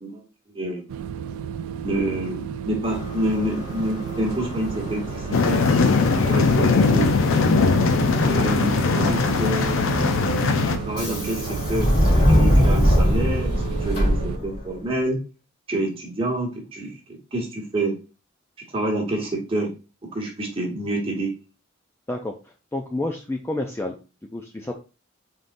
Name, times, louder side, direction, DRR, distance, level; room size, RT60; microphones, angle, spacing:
voice 1, 0.0-0.9 1.8-5.7 6.2-7.1 8.2-9.9 10.7-15.2 15.7-16.9 17.3-17.9 18.6-19.7 20.0-21.3, right 1 dB, 25° right, -1 dB, 1.1 m, -28 dB
sound 1, 0.9-14.4, right 7 dB, 80° right, 0.3 m, -32 dB
Subway metro underground, 2.8-14.8, equal, 45° left, 1.7 m, -24 dB
sound 2, 5.3-10.8, left 4 dB, 70° left, 0.5 m, -20 dB
voice 2, 22.1-23.9 24.3-24.7, left 2 dB, 10° left, 2 dB, 0.3 m, -29 dB
3.9 x 3.5 x 2.5 m, 0.31 s
head